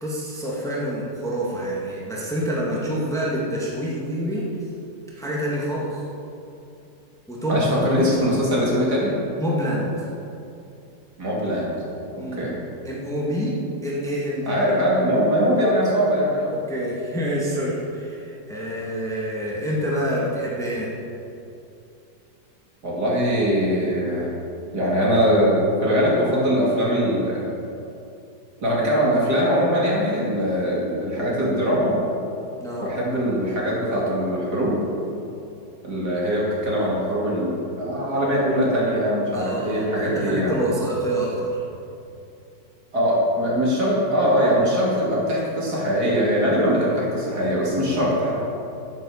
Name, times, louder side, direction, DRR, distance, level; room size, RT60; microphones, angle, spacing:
voice 1, 0.0-4.4 5.2-6.0 7.3-8.2 9.4-10.1 12.2-12.5 12.8-13.5 13.8-14.6 16.5-20.9 32.6-32.8 39.3-41.6, equal, ahead, -5 dB, 1.9 m, -27 dB
voice 2, 7.5-9.2 11.2-11.7 12.1-12.6 14.5-16.5 22.8-24.3 24.7-27.4 28.6-32.0 32.8-34.8 35.8-40.6 42.9-48.3, equal, 60° right, -5 dB, 3.2 m, -21 dB
9.4 x 9.1 x 7.2 m, 2.7 s
omnidirectional pair, 1.9 m